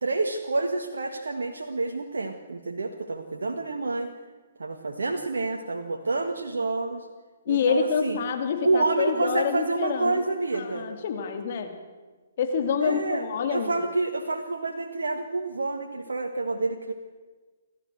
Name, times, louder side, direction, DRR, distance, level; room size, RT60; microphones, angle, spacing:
voice 1, 0.0-4.1 4.6-7.1 7.5-8.2 8.6-10.9 12.8-16.9, right 3 dB, 80° right, 3 dB, 1.8 m, -28 dB
voice 2, 7.5-10.2 10.6-11.7 12.4-13.7, left 6 dB, 50° left, 6 dB, 3.1 m, -27 dB
29.0 x 13.0 x 7.9 m, 1.3 s
figure-of-eight pair, 135°, 0 cm